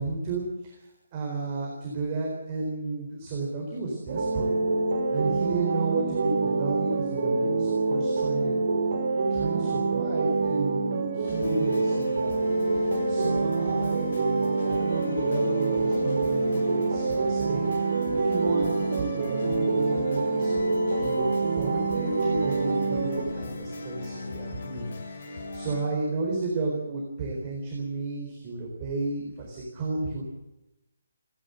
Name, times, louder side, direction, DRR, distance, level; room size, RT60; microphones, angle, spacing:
voice 1, 0.0-4.6 5.1-8.6 9.3-20.7 20.9-30.3, right 3 dB, 15° right, -2 dB, 4.2 m, -33 dB
sound 1, 4.1-23.2, right 3 dB, 40° right, 5.2 m, -26 dB
sound 2, 11.2-25.8, left 3 dB, 45° left, 6.9 m, -38 dB
29.0 x 11.5 x 7.9 m, 0.92 s
hypercardioid pair, 180°, 0 cm